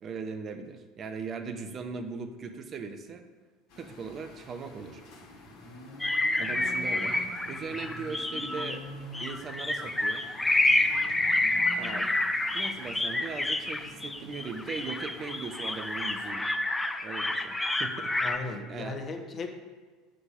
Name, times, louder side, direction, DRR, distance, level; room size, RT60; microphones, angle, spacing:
voice 1, 0.0-3.2 3.8-5.0 6.4-7.2 7.4-8.8 9.2-10.3 11.8-12.1 12.5-16.5 17.0-18.1 18.4-19.0, right 5 dB, 35° right, 7 dB, 0.9 m, -39 dB
sound 1, 3.7-16.3, left 1 dB, 55° left, 1.7 m, -47 dB
sound 2, 6.0-8.8 9.1-18.4, left 2 dB, 10° left, 0.7 m, -29 dB
voice 2, 18.2-19.5, left 3 dB, 35° left, 5 dB, 1.2 m, -36 dB
7.7 x 6.1 x 5.2 m, 1.4 s
figure-of-eight pair, 70°, 0 cm